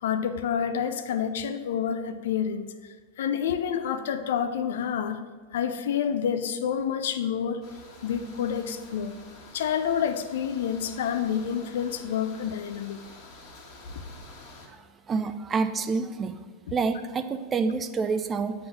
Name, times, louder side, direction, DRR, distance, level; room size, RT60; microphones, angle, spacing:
voice 1, 0.0-5.2 5.5-7.6 8.0-9.1 9.5-13.0, left 8 dB, 70° left, 10 dB, 0.5 m, -28 dB
sound 1, 7.6-14.7, left 2 dB, 45° left, 1.6 m, -48 dB
voice 2, 14.7-16.4 16.7-18.5, right 4 dB, 25° right, 9 dB, 0.5 m, -28 dB
7.6 x 3.7 x 6.0 m, 1.4 s
hypercardioid pair, 100°, 0 cm